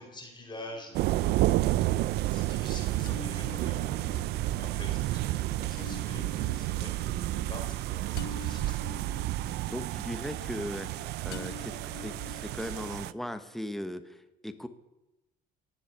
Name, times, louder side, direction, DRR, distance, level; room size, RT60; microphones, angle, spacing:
voice 1, 0.0-1.6 2.3-8.8, left 1 dB, 25° left, 2 dB, 3.9 m, -46 dB
sound 1, 0.5-1.4 3.1-11.0 11.3-13.4, left 7 dB, 70° left, 1.0 m, -48 dB
sound 2, 0.9-13.1, right 16 dB, 80° right, 0.4 m, -31 dB
voice 2, 9.5-14.7, equal, ahead, 9 dB, 1.1 m, -38 dB
18.5 x 7.4 x 7.1 m, 0.99 s
cardioid pair, 110°, 17 cm